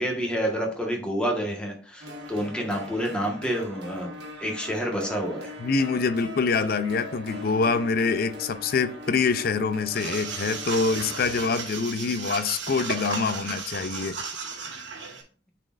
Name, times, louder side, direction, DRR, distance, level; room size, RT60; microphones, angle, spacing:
voice 1, 0.0-5.5, equal, 5° left, 1.3 m, -29 dB
sound 1, 2.0-11.5, left 1 dB, 65° right, 1.4 m, -41 dB
voice 2, 5.6-14.1, left 4 dB, 55° left, 0.5 m, -25 dB
sound 2, 9.9-15.2, right 5 dB, 85° right, 1.3 m, -35 dB
9.5 x 4.2 x 2.5 m
head